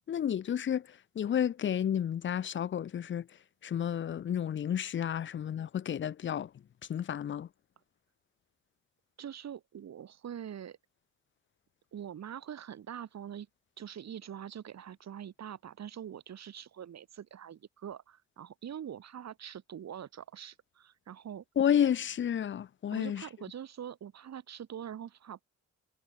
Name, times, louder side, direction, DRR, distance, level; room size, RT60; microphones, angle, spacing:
voice 1, 0.1-0.8 1.2-3.2 3.6-6.5 6.9-7.5 21.6-23.2, left 9 dB, 40° left, 0.6 m, -31 dB
voice 2, 9.2-10.8 11.9-13.5 13.8-21.4 22.9-25.4, right 9 dB, 60° right, 5.9 m, -44 dB
cardioid pair, 90°, 30 cm